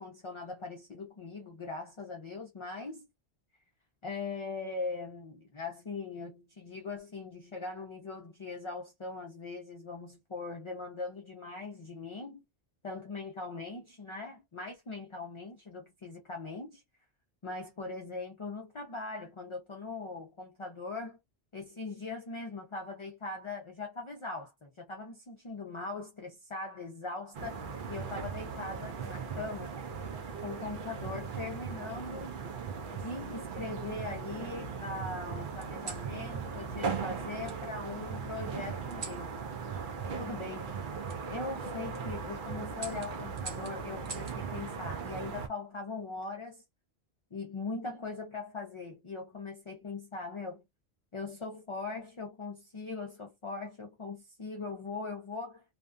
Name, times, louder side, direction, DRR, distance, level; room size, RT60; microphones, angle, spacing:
voice 1, 0.0-3.1 4.0-12.4 12.8-16.8 17.4-21.2 21.5-27.6 27.9-29.8 30.4-32.4 32.9-39.3 40.2-40.8 41.3-46.6 47.3-50.6 51.1-55.6, left 3 dB, 40° left, 0.5 m, -40 dB
sound 1, 27.3-45.5, right 5 dB, 60° right, 0.6 m, -38 dB
sound 2, 28.2-29.4 30.4-30.8 32.1-32.8 33.5-34.4 35.6-36.1 37.4-37.6 38.9-39.3 41.1-41.2 41.7-42.0 42.8-44.4 45.9-46.3, right 3 dB, 85° right, 1.1 m, -47 dB
2.5 x 2.3 x 2.4 m
omnidirectional pair, 1.1 m